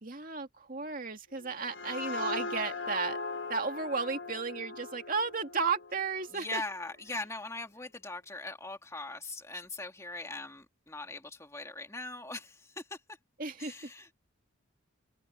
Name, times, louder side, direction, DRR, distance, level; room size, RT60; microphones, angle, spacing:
voice 1, 0.0-3.2 3.5-6.6 13.4-13.9, right 4 dB, 40° right, 2.4 m, -34 dB
sound 1, 1.4-6.8, left 3 dB, 60° left, 1.3 m, -39 dB
voice 2, 6.3-13.2 13.6-14.1, left 2 dB, 15° left, 2.2 m, -41 dB
open air
head